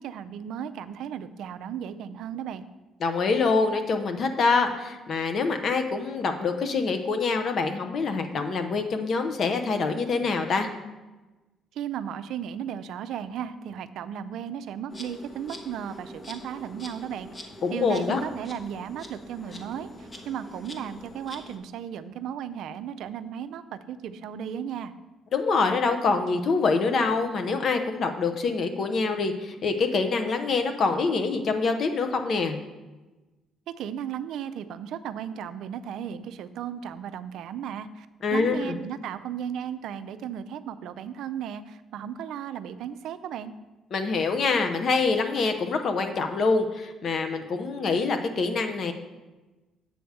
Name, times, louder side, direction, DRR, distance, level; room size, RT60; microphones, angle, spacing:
voice 1, 0.0-2.7 11.7-24.9 33.8-43.5, right 9 dB, 75° right, 12 dB, 0.4 m, -35 dB
voice 2, 3.0-10.7 17.6-18.2 25.3-32.6 38.2-38.8 43.9-48.9, left 4 dB, 55° left, 7 dB, 0.7 m, -25 dB
Insect, 14.9-21.6, left 1 dB, 35° left, 1.0 m, -44 dB
7.7 x 3.4 x 6.5 m, 1.2 s
supercardioid pair, 75°, 0 cm